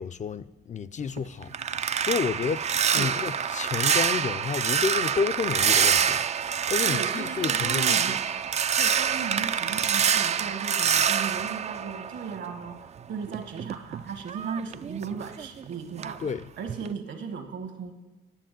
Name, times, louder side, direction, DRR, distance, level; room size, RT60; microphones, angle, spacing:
voice 1, 0.0-1.5 1.8-8.2 16.2-16.5, left 6 dB, 40° left, 0.4 m, -31 dB
sound 1, 1.0-12.6 13.0-15.6 16.0-16.3 16.7-16.9, right 7 dB, 35° right, 0.3 m, -26 dB
voice 2, 6.9-8.3 8.8-16.3 16.6-17.9, right 6 dB, 70° right, 1.6 m, -36 dB
10.0 x 7.2 x 9.1 m
cardioid pair, 90°, 20 cm